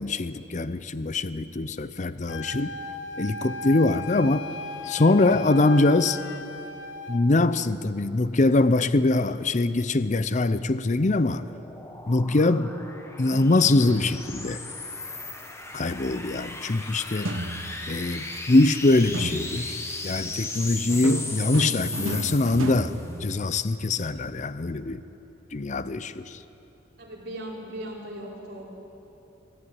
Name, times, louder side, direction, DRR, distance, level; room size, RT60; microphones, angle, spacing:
voice 1, 0.0-2.7 3.2-4.5 4.8-6.2 7.1-11.4 12.1-12.7 13.2-14.6 15.7-17.4 17.9-19.8 20.0-25.0 25.5-26.4, left 2 dB, 35° left, 13 dB, 0.5 m, -23 dB
Wind instrument woodwind instrument, 2.3-7.3, left 3 dB, 65° left, 1.0 m, -36 dB
sound 1, 11.1-23.1, left 3 dB, 15° left, 1.3 m, -37 dB
sound 2, 13.9-14.5 17.3-18.1 19.1-19.9 20.9-23.9, right 1 dB, 85° right, 1.3 m, -34 dB
voice 2, 27.0-28.8, right 1 dB, 55° right, -4 dB, 4.9 m, -38 dB
23.5 x 13.5 x 9.6 m, 2.9 s
head